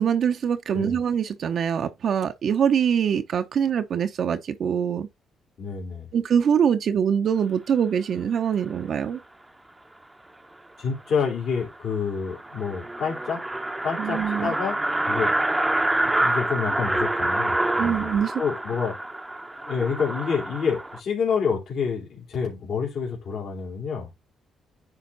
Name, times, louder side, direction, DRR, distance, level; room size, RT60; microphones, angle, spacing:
voice 1, 0.0-5.1 6.1-9.2 14.0-14.5 17.8-18.3, right 8 dB, 60° right, 0.8 m, -24 dB
voice 2, 5.6-6.1 10.8-13.4 13.8-14.8 15.1-15.3 16.1-18.1 18.4-19.0 19.7-24.1, left 6 dB, 65° left, 3.0 m, -28 dB
sound 1, 11.1-11.2 11.5-11.6 11.9-12.0 12.3-21.0, right 1 dB, 10° right, 0.8 m, -27 dB
9.8 x 3.6 x 4.0 m
cardioid pair, 90°, 0 cm